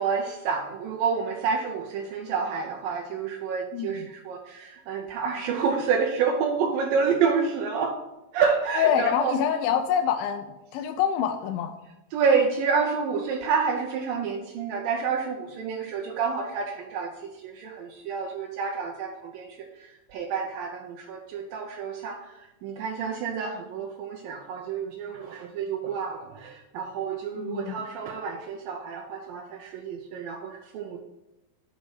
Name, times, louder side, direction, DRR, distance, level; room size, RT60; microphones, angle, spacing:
voice 1, 0.0-8.0 8.3-9.3 12.1-31.0, right 5 dB, 80° right, 2 dB, 2.1 m, -28 dB
voice 2, 3.7-4.1 8.8-10.5 10.7-11.7 27.4-27.9, left 9 dB, 85° left, 8 dB, 2.1 m, -26 dB
6.4 x 5.3 x 6.3 m, 0.98 s
omnidirectional pair, 4.6 m